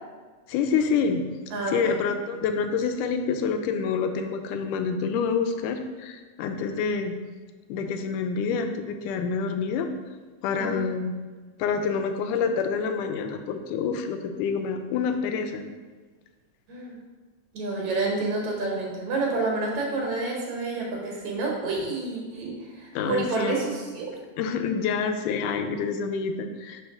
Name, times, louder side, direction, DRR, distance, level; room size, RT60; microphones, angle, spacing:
voice 1, 0.5-1.3 1.7-7.1 7.7-9.9 10.4-11.1 11.6-15.6 22.9-23.6 24.4-26.8, left 5 dB, 85° left, 6 dB, 2.1 m, -27 dB
voice 2, 1.5-2.0 10.6-10.8 16.7-17.0 17.5-24.1, right 3 dB, 70° right, -2 dB, 2.3 m, -29 dB
4.5 x 4.2 x 5.8 m, 1.4 s
omnidirectional pair, 3.6 m